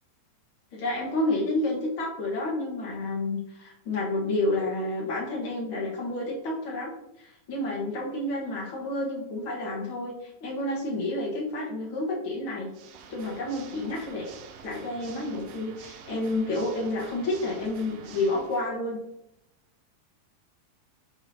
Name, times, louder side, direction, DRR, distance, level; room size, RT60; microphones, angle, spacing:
voice 1, 0.7-6.9 7.2-12.7 13.1-14.3 14.6-19.0, left 2 dB, 65° left, -3 dB, 1.3 m, -30 dB
Water / Mechanisms, 12.7-18.7, right 7 dB, 80° right, 2.4 m, -48 dB
9.7 x 4.9 x 2.7 m, 0.83 s
omnidirectional pair, 4.4 m